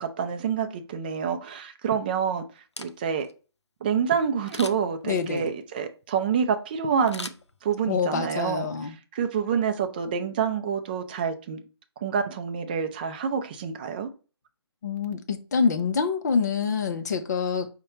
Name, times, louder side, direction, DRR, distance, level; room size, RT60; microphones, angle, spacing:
voice 1, 0.0-2.5 2.8-3.3 3.8-7.3 7.6-11.6 12.0-14.1, right 7 dB, 20° right, 0.4 m, -27 dB
Camera, 2.6-3.3 4.5-5.0 7.1-8.0 8.4-8.5, left 3 dB, 90° left, 0.5 m, -40 dB
voice 2, 5.0-5.5 7.9-8.9 14.8-17.7, left 5 dB, 40° left, 0.6 m, -26 dB
5.4 x 2.2 x 4.1 m
figure-of-eight pair, 145°, 14 cm